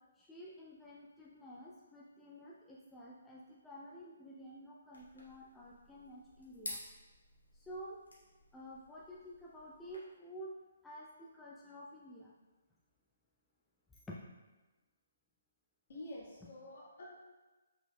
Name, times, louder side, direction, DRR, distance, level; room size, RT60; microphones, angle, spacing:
voice 1, 0.2-6.8 7.5-8.0 8.5-10.5 10.8-12.3 14.1-14.2, equal, 5° left, -5 dB, 0.4 m, -51 dB
sound 1, 4.9-10.0, left 1 dB, 80° left, 1.3 m, -52 dB
voice 2, 15.9-17.0, left 1 dB, 50° left, -5 dB, 1.4 m, -48 dB
5.7 x 3.9 x 2.2 m, 1.2 s
figure-of-eight pair, 135°, 0 cm